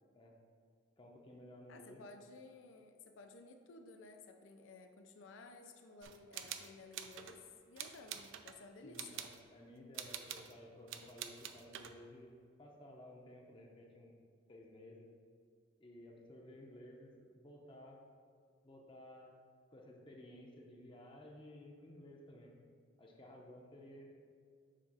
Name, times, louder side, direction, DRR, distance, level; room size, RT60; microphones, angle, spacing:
voice 1, 1.0-2.0 8.8-12.3 12.6-14.2 14.5-15.1 15.8-18.0 18.6-19.3 19.7-22.6 23.0-24.1, left 1 dB, 25° left, 0 dB, 0.6 m, -55 dB
voice 2, 1.7-9.2, left 3 dB, 85° left, 5 dB, 0.5 m, -55 dB
sound 1, 6.0-7.4 7.8-8.5 8.9-9.4 9.9-10.5 10.9-12.0, right 9 dB, 85° right, 0.4 m, -47 dB
7.4 x 2.5 x 5.4 m, 2.1 s
head